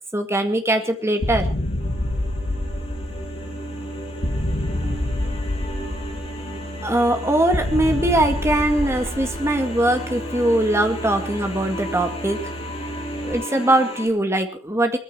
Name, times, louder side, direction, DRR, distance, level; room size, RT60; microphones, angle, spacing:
voice 1, 0.1-1.5 4.7-5.4 6.8-12.5 12.8-12.9 13.2-15.0, right 1 dB, 15° right, 6 dB, 2.0 m, -21 dB
sound 1, 0.7-14.1, equal, 30° left, 4.2 m, -35 dB
sound 2, 1.2-3.5 4.2-6.5 7.5-9.8, left 1 dB, 50° left, 1.5 m, -26 dB
Boat Water vehicle, 1.8-13.3, right 1 dB, 85° left, 3.8 m, -36 dB
20.0 x 14.5 x 4.5 m, 0.38 s
head